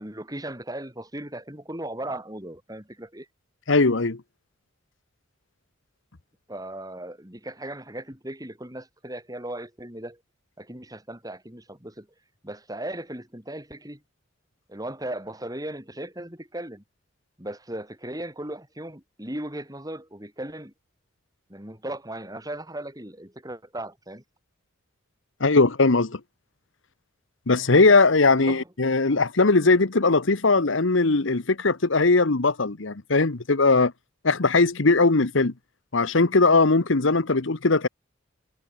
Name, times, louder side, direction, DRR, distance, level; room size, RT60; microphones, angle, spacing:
voice 1, 0.0-3.3 6.5-10.2 10.6-12.1 12.4-14.0 14.7-16.8 17.4-20.7 21.5-24.2 28.4-28.7, right 1 dB, 20° right, 5.5 m, -37 dB
voice 2, 3.7-4.2 25.4-26.2 27.5-33.9 34.2-35.5 35.9-37.9, left 3 dB, 70° left, 1.1 m, -20 dB
head